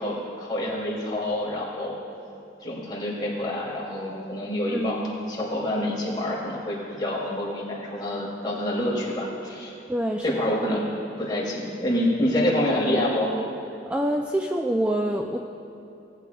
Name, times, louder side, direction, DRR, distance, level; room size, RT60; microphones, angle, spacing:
voice 1, 0.0-1.9 2.6-9.7 10.2-10.8 11.2-13.3, left 1 dB, 25° left, -6 dB, 2.6 m, -27 dB
voice 2, 9.9-10.4 13.9-15.4, right 1 dB, 5° right, 2 dB, 0.3 m, -26 dB
18.5 x 8.4 x 2.3 m, 2.7 s
head